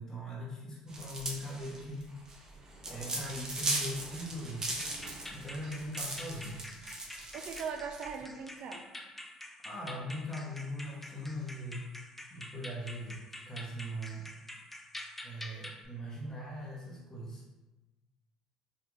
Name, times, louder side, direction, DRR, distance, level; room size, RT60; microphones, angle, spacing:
voice 1, 0.0-2.0 2.8-4.8 5.3-6.6 9.6-11.9 12.3-13.2 13.5-14.3 15.2-17.4, equal, 25° left, -6 dB, 0.9 m, -40 dB
sound 1, 0.9-8.1, right 2 dB, 30° right, 0.8 m, -38 dB
sound 2, 4.8-15.9, left 1 dB, 10° left, 0.4 m, -47 dB
voice 2, 7.3-8.9, right 6 dB, 60° right, 5 dB, 0.4 m, -40 dB
2.9 x 2.4 x 3.7 m, 1.1 s
supercardioid pair, 80°, 2 cm